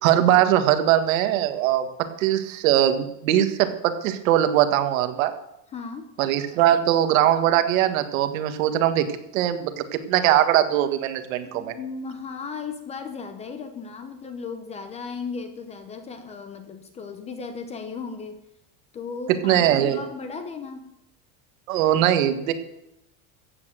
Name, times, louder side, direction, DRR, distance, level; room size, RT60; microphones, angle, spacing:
voice 1, 0.0-5.3 6.2-9.1 9.3-11.7 19.3-20.0 21.7-22.5, right 11 dB, 65° right, 8 dB, 1.7 m, -21 dB
voice 2, 5.7-6.1 11.4-18.4 18.9-20.9, left 5 dB, 15° left, 9 dB, 0.7 m, -36 dB
14.5 x 8.4 x 7.7 m, 0.84 s
supercardioid pair, 175°, 43 cm